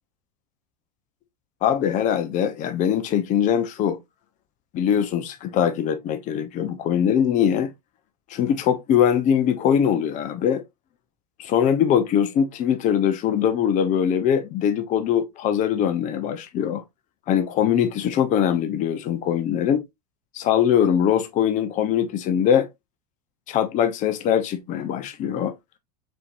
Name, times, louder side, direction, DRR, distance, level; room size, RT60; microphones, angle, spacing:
voice 1, 1.6-4.0 4.7-7.7 8.3-10.6 11.4-16.8 17.3-19.8 20.3-22.7 23.5-25.5, left 9 dB, 40° left, 0.8 m, -22 dB
4.5 x 4.3 x 2.5 m
supercardioid pair, 120°, 20 cm